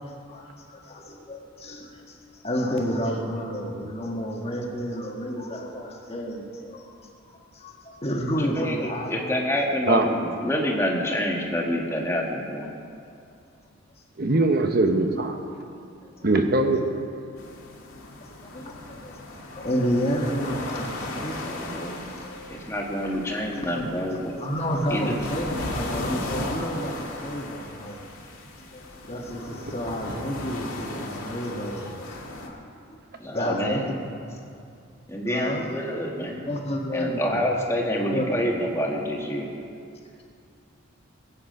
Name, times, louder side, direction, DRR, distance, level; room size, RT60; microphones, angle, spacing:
voice 1, 0.3-2.2 2.4-6.8 7.2-9.3 15.5-15.6 18.4-19.1 19.5-22.5 23.7-23.9 24.4-28.0 28.6-32.2 32.4-32.6 33.3-34.4 35.2-35.7 36.3-37.6 38.0-38.3, equal, 30° left, 0 dB, 1.6 m, -30 dB
voice 2, 8.4-8.8 9.1-12.7 22.5-24.3 24.9-25.1 33.2-33.8 35.1-36.5 36.9-39.5, equal, 15° left, -1 dB, 1.6 m, -27 dB
voice 3, 14.2-15.4 16.2-16.9, right 2 dB, 45° right, 5 dB, 0.9 m, -21 dB
sound 1, 17.4-32.5, left 2 dB, 90° left, 1.9 m, -36 dB
20.5 x 8.5 x 5.4 m, 2.4 s
head